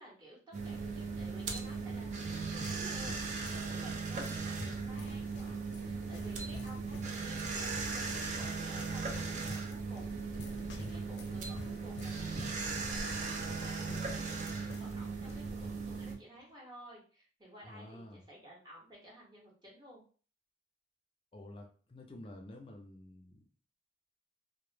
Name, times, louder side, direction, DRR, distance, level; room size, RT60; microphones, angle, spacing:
voice 1, 0.0-10.1 10.7-20.0, equal, 25° right, -4 dB, 0.9 m, -54 dB
sound 1, 0.5-16.2, right 4 dB, 40° right, 0.4 m, -38 dB
sound 2, 2.1-15.0 15.2-15.4 16.1-16.4, left 2 dB, 90° left, 0.5 m, -50 dB
voice 2, 17.6-18.2 21.3-23.5, left 1 dB, 30° left, 2 dB, 0.4 m, -50 dB
2.0 x 2.0 x 3.1 m, 0.40 s
head